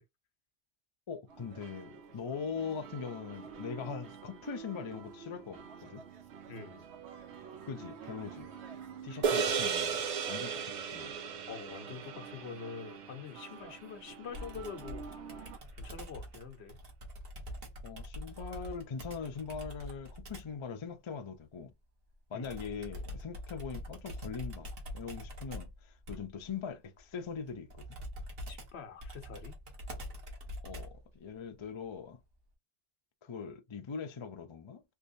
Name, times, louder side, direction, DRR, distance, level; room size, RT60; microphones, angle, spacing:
voice 1, 1.1-6.0 7.7-8.5 9.0-11.2 17.8-21.7 22.3-27.9 30.6-32.2 33.2-34.8, left 6 dB, 35° left, 0.5 m, -41 dB
sound 1, 1.3-15.6, right 6 dB, 85° right, 1.0 m, -49 dB
voice 2, 6.5-6.9 9.1-9.2 11.5-16.8 22.3-22.6 28.5-29.6, left 5 dB, 80° left, 1.1 m, -46 dB
sound 2, 9.2-13.8, right 6 dB, 50° right, 0.5 m, -34 dB
Computer keyboard, 14.3-20.6 22.4-31.1, equal, 65° right, 1.3 m, -45 dB
3.3 x 3.1 x 2.6 m
omnidirectional pair, 1.1 m